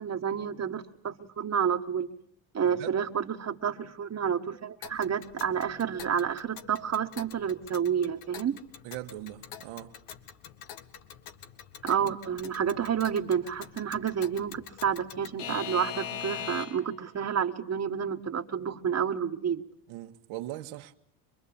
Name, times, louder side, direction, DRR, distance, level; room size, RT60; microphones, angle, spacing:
voice 1, 0.0-2.1 2.5-8.6 11.8-19.6, right 7 dB, 35° right, 1.4 m, -30 dB
voice 2, 2.6-3.0 8.8-9.9 19.9-20.9, right 14 dB, 80° right, 1.6 m, -40 dB
Alarm / Clock, 4.8-17.0, left 9 dB, 90° left, 1.9 m, -43 dB
26.0 x 22.0 x 8.7 m
cardioid pair, 110°, 47 cm